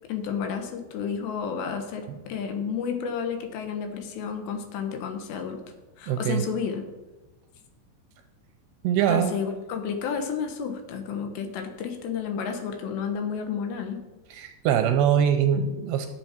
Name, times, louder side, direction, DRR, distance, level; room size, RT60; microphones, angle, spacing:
voice 1, 0.1-5.6 6.0-6.8 9.1-14.0, left 6 dB, 80° left, 6 dB, 3.3 m, -31 dB
voice 2, 6.1-6.4 8.8-9.3 14.4-16.1, right 9 dB, 80° right, 7 dB, 2.5 m, -23 dB
11.5 x 8.3 x 4.5 m, 1.1 s
omnidirectional pair, 5.1 m